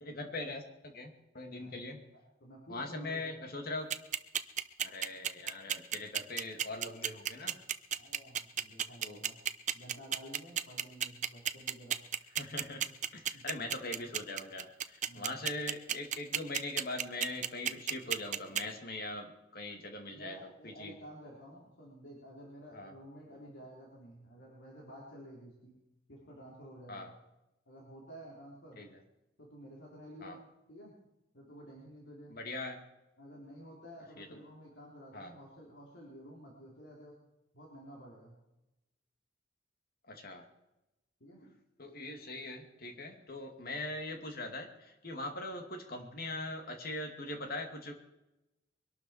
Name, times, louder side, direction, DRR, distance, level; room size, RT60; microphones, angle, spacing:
voice 1, 0.0-2.0 2.7-3.9 4.8-7.6 9.0-9.2 12.3-12.9 13.1-20.9 22.7-22.9 26.9-27.1 28.8-29.0 30.2-30.4 32.3-32.8 34.2-34.4 35.1-35.3 40.1-40.4 41.4-41.5 41.8-47.9, left 2 dB, 55° left, 3 dB, 2.4 m, -41 dB
voice 2, 1.5-1.9 2.4-3.4 8.0-9.4 9.7-12.0 13.3-13.5 15.0-15.4 20.1-25.8 26.1-27.1 27.7-28.8 29.4-30.4 30.7-31.0 31.3-32.4 33.2-37.2 37.5-38.4 41.2-41.4 43.6-43.8, equal, 70° left, -4 dB, 3.7 m, -52 dB
sound 1, 3.9-18.6, right 9 dB, 40° right, 0.6 m, -32 dB
23.0 x 12.0 x 4.4 m, 0.94 s
head